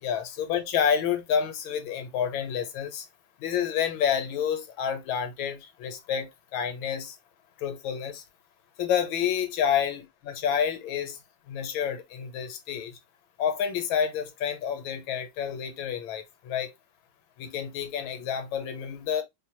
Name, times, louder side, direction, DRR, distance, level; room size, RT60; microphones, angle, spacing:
voice 1, 0.0-3.0 3.4-7.1 7.6-8.2 8.8-11.2 11.5-13.0 13.4-16.7 17.4-19.2, left 8 dB, 90° left, 1.5 m, -29 dB
4.8 x 2.1 x 2.8 m
omnidirectional pair, 2.1 m